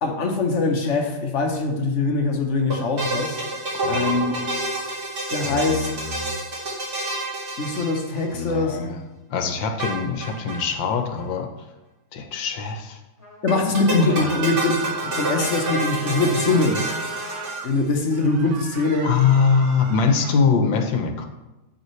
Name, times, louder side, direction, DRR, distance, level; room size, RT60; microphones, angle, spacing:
voice 1, 0.0-3.4 3.9-4.5 5.3-5.9 7.6-8.8 13.4-16.8 17.6-19.1, left 3 dB, 45° left, 3 dB, 1.0 m, -22 dB
sound 1, 2.7-8.5 9.8-10.6 10.9-11.0 11.2-11.3 13.5-18.0, right 2 dB, 50° right, 2.4 m, -29 dB
voice 2, 3.7-4.6 5.4-6.3 8.3-9.0 9.3-11.5 12.1-13.0 14.1-14.3 19.0-21.3, left 5 dB, 70° left, 5 dB, 1.5 m, -23 dB
Trumpet, 13.2-17.5, left 1 dB, 15° left, 3.1 m, -39 dB
sound 2, 14.0-15.7 16.4-17.7 18.1-20.4, right 6 dB, 90° right, 1.6 m, -35 dB
9.3 x 7.6 x 3.2 m, 1.1 s
omnidirectional pair, 2.2 m